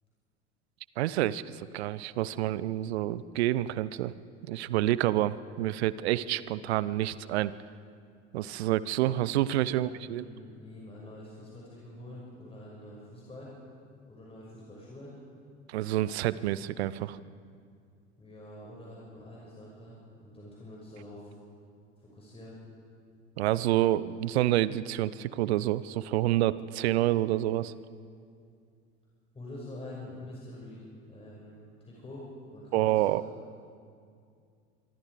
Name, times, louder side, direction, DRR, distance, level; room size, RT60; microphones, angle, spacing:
voice 1, 1.0-4.1 4.5-7.5 8.3-10.2 15.7-17.2 23.4-27.7 32.7-33.2, right 14 dB, 60° right, 18 dB, 0.8 m, -28 dB
voice 2, 9.7-13.5 14.1-15.1 18.2-19.9 20.2-21.3 22.0-22.6 29.3-31.5 31.8-32.3 32.5-33.3, left 1 dB, 15° left, -5 dB, 6.2 m, -46 dB
25.5 x 23.5 x 4.9 m, 2.3 s
figure-of-eight pair, 70°, 36 cm